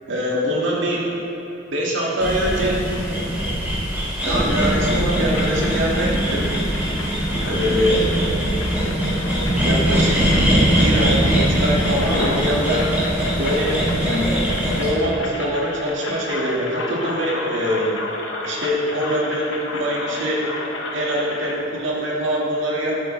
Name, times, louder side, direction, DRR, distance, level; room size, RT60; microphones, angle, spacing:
voice 1, 0.1-1.1 1.7-2.8 4.2-6.5 7.4-8.1 9.6-10.4 10.7-12.9 13.3-14.4 14.7-18.0 18.4-20.5 20.9-23.0, equal, 80° right, -4 dB, 1.8 m, -23 dB
sound 1, 2.2-14.9, equal, 10° right, 2.1 m, -21 dB
sound 2, 4.5-21.5, left 2 dB, 80° left, 1.0 m, -32 dB
11.0 x 8.5 x 3.2 m, 3.0 s
head